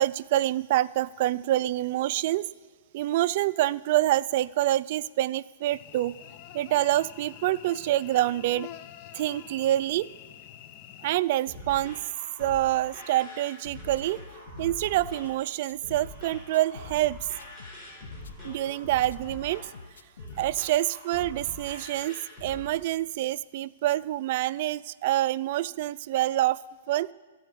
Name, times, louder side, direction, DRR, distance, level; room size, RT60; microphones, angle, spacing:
voice 1, 0.0-2.5 2.9-6.2 6.5-8.7 9.1-10.1 11.0-12.0 12.4-14.2 14.6-17.2 18.4-19.6 20.4-26.6 26.9-27.1, right 14 dB, 50° right, 18 dB, 0.3 m, -26 dB
Cricket / Buzz, 5.7-11.2, left 11 dB, 40° left, 0.5 m, -46 dB
sound 1, 11.2-22.7, left 1 dB, 20° left, 4.5 m, -44 dB
sound 2, 14.0-15.4 15.7-17.1 17.4-18.8 19.1-20.5, left 4 dB, 85° left, 0.6 m, -49 dB
14.0 x 4.9 x 8.1 m, 1.4 s
hypercardioid pair, 135°, 0 cm